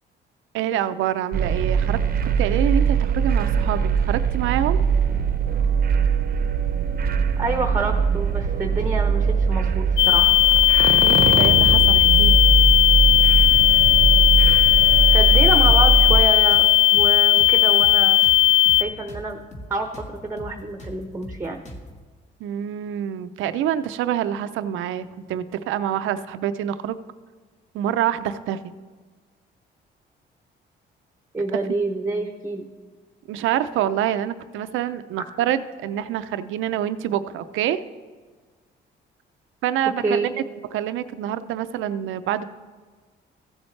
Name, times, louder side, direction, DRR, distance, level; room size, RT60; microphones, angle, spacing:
voice 1, 0.5-2.0 2.4-4.8 10.9-12.4 22.4-27.0 27.7-28.6 33.3-37.8 39.6-40.4 40.7-42.4, right 11 dB, 85° right, 12 dB, 0.5 m, -26 dB
sound 1, 1.3-16.2, right 6 dB, 50° right, 0.7 m, -21 dB
voice 2, 7.4-10.4 15.1-16.7 16.9-18.2 18.8-19.4 19.7-19.9 20.2-21.6 31.3-32.7 40.0-40.3, right 2 dB, 15° right, 5 dB, 0.8 m, -27 dB
sound 2, 8.4-9.0 9.2-9.4 9.6-10.7 10.9-11.1 11.4-12.4 12.6-12.8 13.1-14.1 14.4-14.5 14.8-16.2 16.5-19.2 19.5-19.7 19.9-22.0, left 1 dB, 35° left, 1.5 m, -39 dB
sound 3, 10.0-18.8, left 15 dB, 75° left, 0.4 m, -16 dB
15.0 x 7.2 x 3.2 m, 1.4 s
cardioid pair, 90°, 20 cm